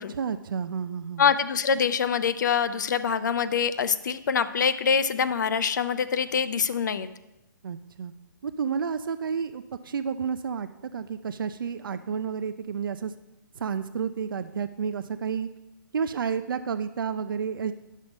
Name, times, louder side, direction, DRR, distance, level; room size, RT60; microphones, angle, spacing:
voice 1, 0.0-1.3 7.6-8.1 8.4-13.1 13.6-15.5 15.9-17.7, right 6 dB, 75° right, 10 dB, 0.5 m, -31 dB
voice 2, 1.2-7.1, left 6 dB, 60° left, 13 dB, 0.6 m, -25 dB
10.0 x 6.3 x 5.2 m, 0.97 s
hypercardioid pair, 165°, 11 cm